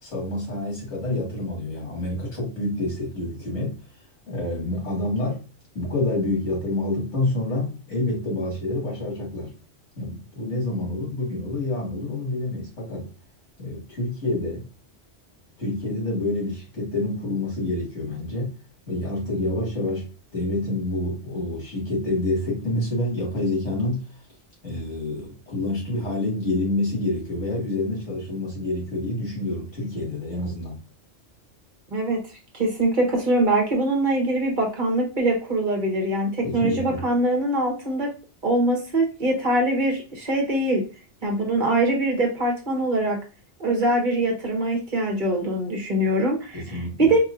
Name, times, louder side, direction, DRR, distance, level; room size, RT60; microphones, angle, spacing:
voice 1, 0.0-3.8 4.3-5.4 5.7-9.5 10.0-13.1 13.6-14.7 15.6-18.5 18.9-24.1 24.6-30.8 36.4-37.0 46.5-47.1, left 2 dB, 85° left, 2.3 m, -28 dB
voice 2, 31.9-32.2 32.5-38.1 38.4-40.8 41.2-43.2 43.6-47.2, right 1 dB, 45° right, 1.3 m, -23 dB
4.6 x 2.9 x 2.5 m
omnidirectional pair, 1.2 m